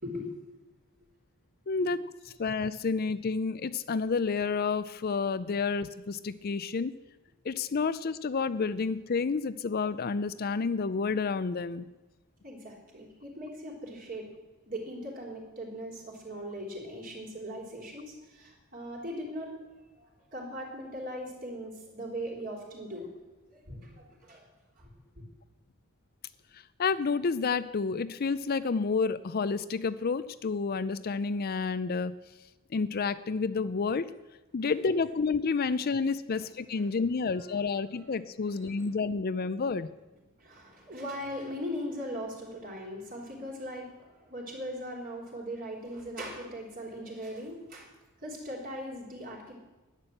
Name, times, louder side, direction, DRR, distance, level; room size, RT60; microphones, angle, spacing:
voice 1, 1.7-2.0 2.4-7.0 7.4-11.9 26.8-32.2 32.7-34.1 34.5-39.9, left 4 dB, 45° left, 13 dB, 0.5 m, -30 dB
voice 2, 12.4-14.3 14.7-19.6 20.0-23.3 23.5-24.5 24.8-24.9 36.4-36.5 36.8-36.9 37.3-37.4 37.7-37.8 38.4-38.9 40.4-47.9 48.2-49.6, equal, 45° right, -2 dB, 4.0 m, -40 dB
11.5 x 10.5 x 7.9 m, 1.1 s
head